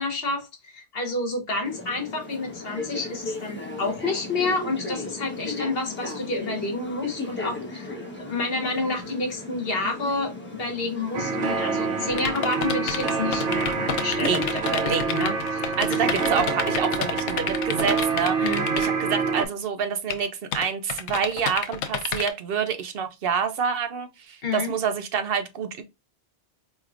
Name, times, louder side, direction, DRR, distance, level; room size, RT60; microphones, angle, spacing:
voice 1, 0.0-16.0 18.4-18.6 24.4-24.7, left 3 dB, 60° left, 1.3 m, -29 dB
sound 1, 1.6-14.0, left 3 dB, 10° left, 0.9 m, -36 dB
sound 2, 11.1-19.5, right 4 dB, 85° right, 1.1 m, -26 dB
sound 3, 12.1-18.9 20.1-20.2 20.5-22.3, left 8 dB, 85° left, 0.9 m, -29 dB
voice 2, 15.8-25.8, right 6 dB, 60° right, 0.8 m, -27 dB
4.5 x 3.2 x 2.4 m
omnidirectional pair, 1.2 m